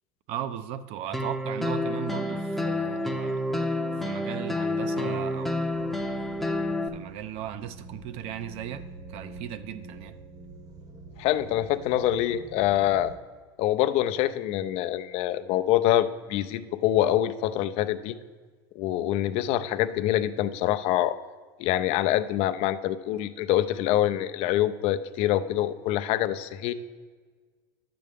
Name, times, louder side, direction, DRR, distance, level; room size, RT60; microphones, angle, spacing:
voice 1, 0.3-3.4 4.0-5.8 6.4-10.2, right 10 dB, 60° right, 12 dB, 0.6 m, -37 dB
sound 1, 1.1-6.9, left 1 dB, ahead, 0.6 m, -29 dB
sound 2, 4.7-13.2, right 3 dB, 30° right, 0.9 m, -47 dB
voice 2, 11.2-13.1 13.6-18.1 18.8-21.2 21.6-26.7, left 12 dB, 60° left, 12 dB, 0.5 m, -25 dB
9.9 x 7.7 x 3.5 m, 1.5 s
supercardioid pair, 105°, 12 cm